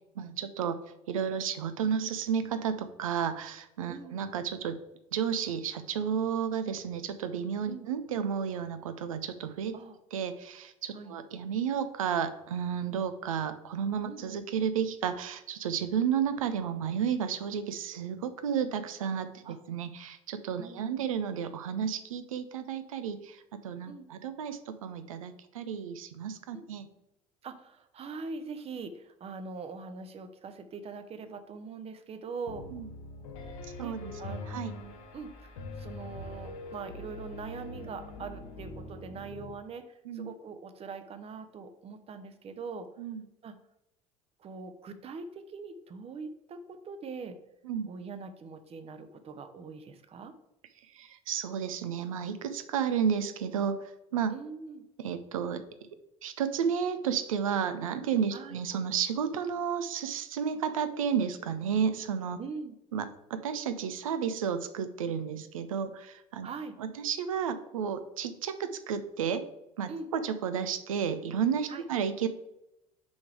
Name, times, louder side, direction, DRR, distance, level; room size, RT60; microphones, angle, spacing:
voice 1, 0.2-0.8 1.1-4.8 5.1-9.7 10.1-26.9 32.7-32.9 33.8-34.1 34.5-34.7 40.1-40.3 43.0-43.2 47.6-47.9 50.9-53.8 54.1-54.3 55.0-55.6 56.2-62.4 62.9-66.5 66.8-69.4 69.8-72.3, right 7 dB, 75° right, 10 dB, 0.6 m, -32 dB
voice 2, 3.9-4.2 7.7-7.9 9.7-10.0 10.9-11.1 14.0-14.3 19.4-19.6 20.6-21.1 23.9-24.1 26.5-26.7 27.4-32.6 33.4-33.5 33.8-39.8 40.1-42.9 43.4-43.5 44.4-47.4 47.9-50.3 54.3-54.9 58.3-58.6 62.4-62.8 66.4-66.7 69.9-70.1 71.7-71.8, right 4 dB, 35° right, 9 dB, 0.8 m, -42 dB
Piano, 32.5-39.5, left 2 dB, 65° left, 0.9 m, -43 dB
6.1 x 3.7 x 4.7 m, 0.88 s
figure-of-eight pair, 60°, 18 cm